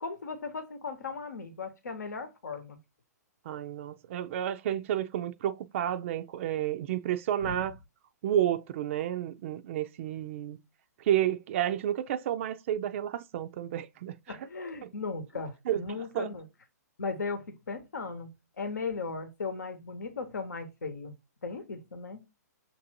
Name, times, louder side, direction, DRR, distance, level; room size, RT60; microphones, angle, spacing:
voice 1, 0.0-2.8 7.4-7.5 14.3-16.4 17.0-21.1 21.4-22.2, left 4 dB, 85° left, 0.9 m, -37 dB
voice 2, 3.5-7.8 8.2-10.6 11.0-14.4 14.8-14.9 15.7-15.8 16.1-16.3, right 11 dB, 45° right, 0.4 m, -31 dB
6.5 x 2.6 x 2.8 m
hypercardioid pair, 125°, 9 cm